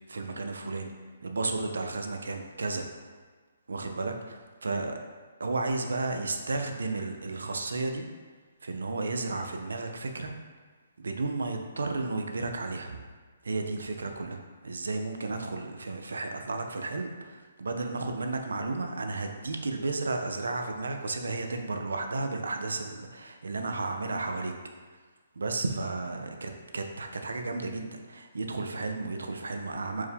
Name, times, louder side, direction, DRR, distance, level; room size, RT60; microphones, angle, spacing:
voice 1, 0.1-0.9 1.2-2.8 3.7-5.0 5.4-8.0 8.6-10.3 11.0-13.0 13.4-24.5 25.4-30.1, right 3 dB, 85° right, 4 dB, 0.4 m, -33 dB
4.5 x 2.1 x 3.4 m, 1.4 s
hypercardioid pair, 150°, 0 cm